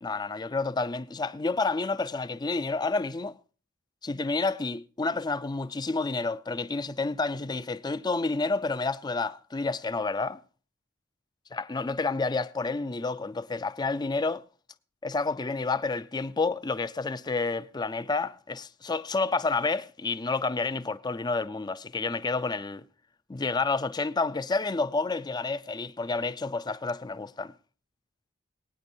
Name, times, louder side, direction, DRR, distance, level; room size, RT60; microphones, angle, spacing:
voice 1, 0.0-3.3 4.0-10.4 11.5-14.4 15.0-22.8 23.3-27.5, left 3 dB, 20° left, 0.4 m, -29 dB
19.5 x 9.6 x 2.7 m
head